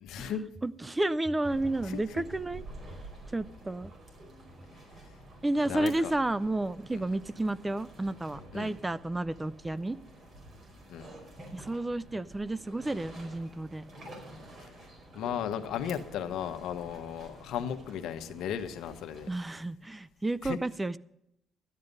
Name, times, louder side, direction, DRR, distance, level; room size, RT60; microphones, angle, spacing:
voice 1, 0.1-0.4 1.8-2.2 5.7-6.1 6.9-7.0 8.5-8.7 10.9-11.1 15.1-19.3 20.4-20.6, left 9 dB, 80° left, 7 dB, 1.1 m, -35 dB
voice 2, 0.6-2.6 3.3-3.9 5.4-10.0 11.5-13.8 19.3-21.0, right 2 dB, 15° right, 18 dB, 0.4 m, -31 dB
sound 1, 1.4-19.4, right 1 dB, 45° right, 4.9 m, -49 dB
13.5 x 9.6 x 5.4 m, 0.81 s
cardioid pair, 105°, 0 cm